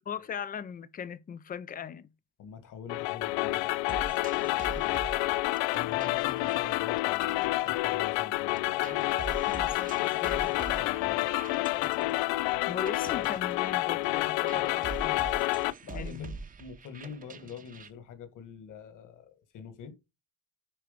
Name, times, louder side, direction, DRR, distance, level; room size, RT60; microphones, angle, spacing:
voice 1, 0.1-2.1 9.1-10.9 12.7-15.4 15.9-16.3, left 7 dB, 20° left, 0.4 m, -39 dB
voice 2, 2.4-4.9 5.7-8.8 10.7-11.4 15.8-19.9, left 7 dB, 45° left, 1.8 m, -45 dB
sound 1, 2.9-15.7, left 19 dB, 85° left, 0.6 m, -29 dB
sound 2, 3.9-8.3 8.6-17.9, right 4 dB, 20° right, 0.8 m, -44 dB
9.8 x 4.5 x 5.1 m
cardioid pair, 165°, 43 cm